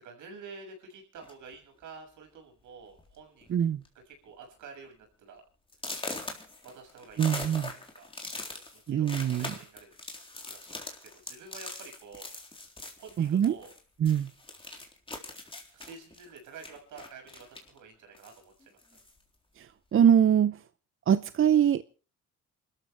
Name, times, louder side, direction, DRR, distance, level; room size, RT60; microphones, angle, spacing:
voice 1, 0.0-3.6 3.9-5.4 6.6-9.9 10.4-12.3 13.0-13.7 15.7-19.0, right 4 dB, 80° right, 7.0 m, -49 dB
sound 1, 1.2-1.5 2.3-2.4 2.8-3.1 3.4-3.9 4.3-4.4 4.9-5.0 5.7-13.8 14.0-17.8 18.1-19.2, left 2 dB, 20° left, 3.8 m, -42 dB
voice 2, 3.5-3.8 7.2-7.7 8.9-9.5 13.2-13.5 14.0-14.3 19.9-20.6 21.1-21.8, right 9 dB, 45° right, 0.7 m, -23 dB
28.0 x 13.5 x 3.4 m
cardioid pair, 90°, 30 cm